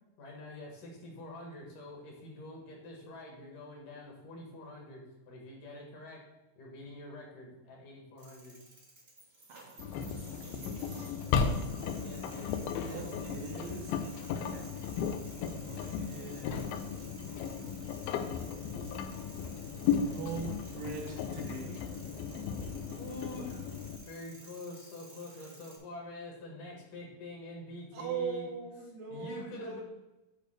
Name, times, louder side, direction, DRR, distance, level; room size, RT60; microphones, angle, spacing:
voice 1, 0.2-6.2 6.6-8.6 11.9-13.2 14.4-14.6 23.0-23.7 24.1-28.5 29.1-29.8, left 2 dB, 65° left, -1 dB, 2.9 m, -46 dB
sound 1, 8.2-25.8, right 2 dB, 30° right, 1.4 m, -53 dB
voice 2, 9.5-10.2 10.5-10.9 12.6-14.0 15.6-16.9 19.7-21.8 27.9-29.8, right 6 dB, 70° right, 0 dB, 2.7 m, -41 dB
Engine, 9.8-24.0, left 6 dB, 85° left, 2.5 m, -35 dB
8.7 x 3.3 x 6.3 m, 1.0 s
omnidirectional pair, 4.2 m